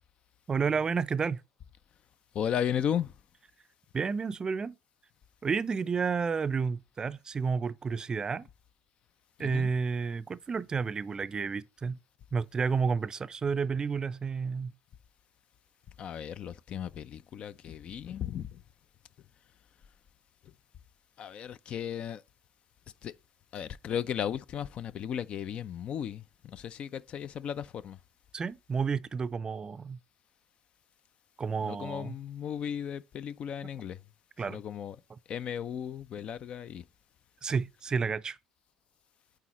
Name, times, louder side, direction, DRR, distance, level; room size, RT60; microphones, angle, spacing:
voice 1, 0.5-1.4 3.9-4.8 5.4-8.5 9.4-12.0 12.3-14.7 28.3-30.0 31.4-32.1 34.4-34.6 37.4-38.4, right 5 dB, 30° right, 0.4 m, -31 dB
voice 2, 2.3-3.1 9.4-9.7 16.0-18.6 21.2-22.2 23.0-23.1 23.5-28.0 31.6-34.0 34.5-35.0 35.3-36.8, left 9 dB, 50° left, 0.4 m, -35 dB
8.2 x 3.9 x 3.0 m
hypercardioid pair, 65°, 3 cm